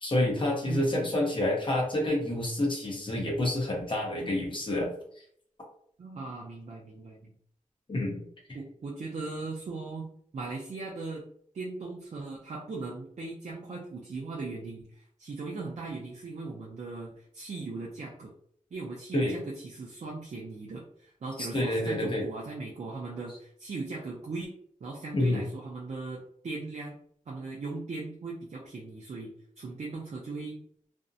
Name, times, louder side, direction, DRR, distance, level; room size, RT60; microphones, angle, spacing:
voice 1, 0.0-4.9 7.9-8.2 19.1-19.3 21.4-22.3 25.1-25.4, left 1 dB, 35° left, -3 dB, 0.8 m, -28 dB
voice 2, 0.6-1.1 6.0-7.3 8.5-10.1 10.3-11.3 11.5-18.3 18.7-24.5 24.8-27.0 27.3-30.6, right 3 dB, 55° right, -2 dB, 0.4 m, -38 dB
2.5 x 2.0 x 2.6 m, 0.64 s
wide cardioid pair, 105°, 14 cm